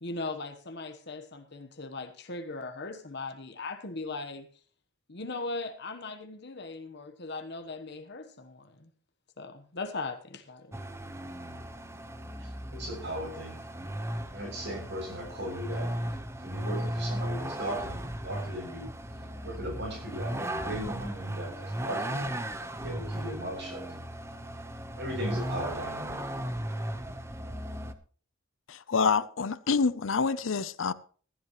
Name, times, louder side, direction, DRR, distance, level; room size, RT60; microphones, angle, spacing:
voice 1, 0.0-4.5 5.1-8.9 9.4-10.8, left 3 dB, 55° left, 1.2 m, -39 dB
Vehicle, 10.7-27.9, right 1 dB, 15° right, 1.0 m, -36 dB
voice 2, 12.4-13.6 14.3-15.9 16.4-18.9 19.4-22.3 22.7-23.8 25.0-26.2, equal, 60° right, 7.4 m, -37 dB
voice 3, 28.7-30.9, left 5 dB, 75° left, 0.6 m, -27 dB
15.5 x 14.0 x 3.1 m
head